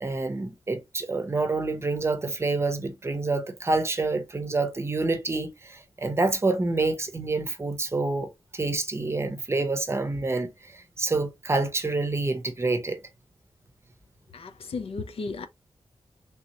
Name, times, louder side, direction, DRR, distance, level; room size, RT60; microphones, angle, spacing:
voice 1, 0.0-13.0, right 3 dB, 25° right, 0.6 m, -27 dB
voice 2, 14.3-15.5, left 4 dB, 80° left, 0.6 m, -34 dB
3.5 x 2.8 x 2.9 m
wide cardioid pair, 125°, 10 cm